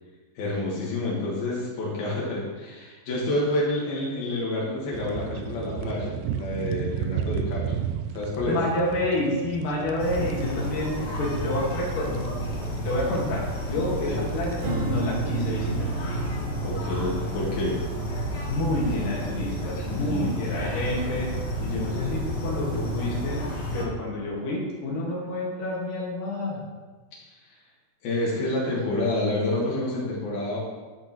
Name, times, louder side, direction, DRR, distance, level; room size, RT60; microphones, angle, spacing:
voice 1, 0.4-7.8 8.1-8.6 14.1-14.2 16.6-17.8 19.8-20.4 28.0-30.6, left 1 dB, 85° left, -5 dB, 3.7 m, -28 dB
sound 1, 4.9-14.6, right 9 dB, 85° right, 1.7 m, -34 dB
voice 2, 8.5-12.3 12.8-16.0 18.5-21.3 21.6-23.4 23.7-26.6, left 1 dB, 65° left, -5 dB, 3.5 m, -29 dB
sound 2, 10.0-23.8, equal, 50° left, 1.3 m, -31 dB
Strum, 14.6-21.0, right 5 dB, 55° right, 1.8 m, -34 dB
11.5 x 8.1 x 3.1 m, 1.3 s
omnidirectional pair, 4.2 m